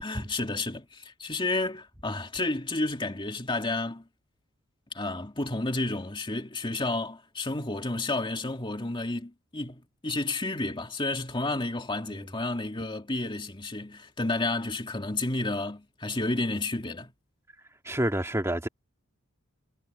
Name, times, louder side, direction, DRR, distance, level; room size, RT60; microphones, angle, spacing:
voice 1, 0.0-4.1 4.9-17.1, left 2 dB, 25° left, 2.2 m, -31 dB
voice 2, 17.8-18.7, right 1 dB, 15° right, 2.6 m, -28 dB
head